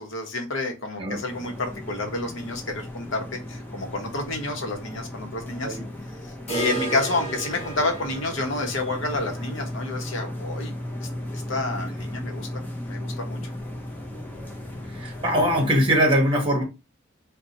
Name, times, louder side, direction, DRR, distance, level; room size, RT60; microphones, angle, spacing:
voice 1, 0.0-3.2 3.5-5.8 6.2-10.7 11.0-12.5 12.8-13.4, left 2 dB, 65° left, 0.8 m, -29 dB
sound 1, 1.3-15.7, left 1 dB, 10° left, 0.4 m, -36 dB
sound 2, 6.5-12.3 12.6-12.7 13.0-13.1 13.6-13.7 14.6-14.7, right 3 dB, 30° left, 1.0 m, -36 dB
voice 2, 14.9-16.6, equal, 25° right, 1.0 m, -21 dB
2.6 x 2.2 x 4.0 m
head